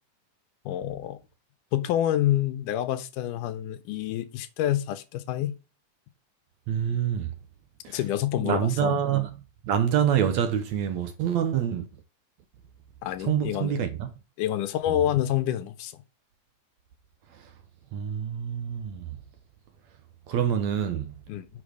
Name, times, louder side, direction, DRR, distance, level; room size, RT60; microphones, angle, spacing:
voice 1, 0.7-1.2 1.7-5.5 7.9-9.0 13.0-13.8 14.4-15.9 21.3-21.5, left 12 dB, 80° left, 2.2 m, -27 dB
voice 2, 6.7-7.3 7.8-8.0 8.4-9.3 9.6-11.9 13.2-14.1 14.9-15.0 17.9-19.1 20.3-21.1, right 9 dB, 70° right, 1.9 m, -26 dB
8.7 x 4.1 x 6.3 m
omnidirectional pair, 3.8 m